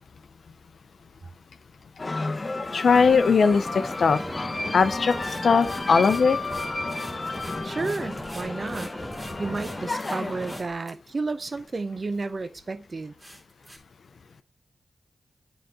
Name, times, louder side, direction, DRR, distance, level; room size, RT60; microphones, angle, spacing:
sound 1, 2.0-10.6, left 2 dB, 40° left, 0.9 m, -32 dB
voice 1, 2.7-4.2 4.7-6.4, left 5 dB, 70° left, 0.6 m, -20 dB
sound 2, 2.9-10.6, equal, 5° right, 1.3 m, -40 dB
sound 3, 5.0-10.2 10.4-10.9 11.5-11.6 12.1-12.2 12.6-12.7 13.2-13.8, right 1 dB, 20° right, 2.8 m, -45 dB
voice 2, 7.6-8.9 9.4-13.1, right 3 dB, 50° right, 0.6 m, -31 dB
8.7 x 3.9 x 4.0 m
cardioid pair, 40°, 0 cm